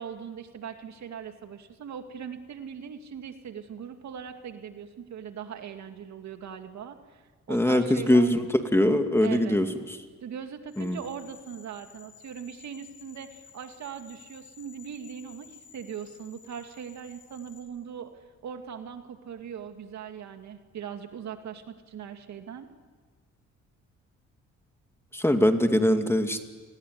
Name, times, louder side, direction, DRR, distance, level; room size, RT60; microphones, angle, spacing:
voice 1, 0.0-7.2 7.5-8.4 9.2-9.6 10.2-22.7, right 7 dB, 65° right, 6 dB, 2.4 m, -40 dB
voice 2, 7.5-9.7 10.8-11.0 25.1-26.4, left 1 dB, 10° left, 6 dB, 2.4 m, -22 dB
sound 1, 10.7-17.6, left 8 dB, 75° left, 6.2 m, -53 dB
29.5 x 20.5 x 9.5 m, 1.4 s
cardioid pair, 90°, 30 cm